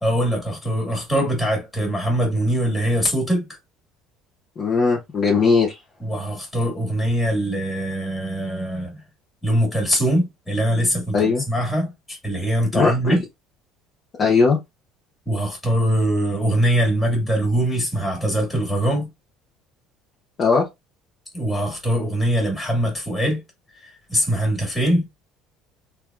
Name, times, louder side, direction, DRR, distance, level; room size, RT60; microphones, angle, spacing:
voice 1, 0.0-3.5 6.0-9.0 9.4-13.2 15.3-19.1 21.3-23.4 24.1-25.0, right 1 dB, 10° left, 1.6 m, -22 dB
voice 2, 4.6-5.8 11.1-11.4 12.7-13.2 14.2-14.6 20.4-20.6, left 4 dB, 40° left, 0.7 m, -18 dB
3.3 x 2.1 x 2.3 m
cardioid pair, 110°, 0 cm